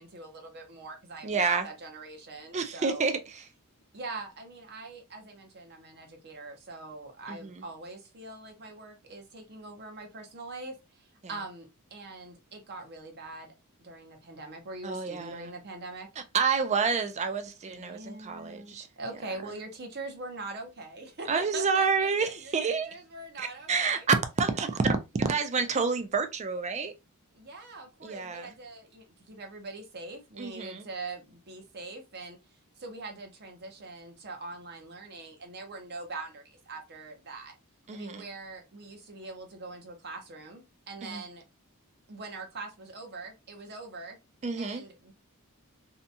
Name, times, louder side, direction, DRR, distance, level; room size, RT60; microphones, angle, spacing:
voice 1, 0.0-3.1 3.9-13.5 13.8-16.1 17.7-24.1 27.3-32.4 32.8-37.5 37.9-41.4 42.1-44.2 44.6-45.1, right 3 dB, 50° right, 0.7 m, -43 dB
voice 2, 1.2-1.7 2.5-3.1 7.3-7.6 14.8-15.5 16.3-18.9 21.3-23.0 23.4-26.9 28.0-28.5 30.4-30.9 37.9-38.2 41.0-41.2 44.4-44.8, right 5 dB, 30° right, 0.4 m, -28 dB
2.8 x 2.3 x 2.6 m
head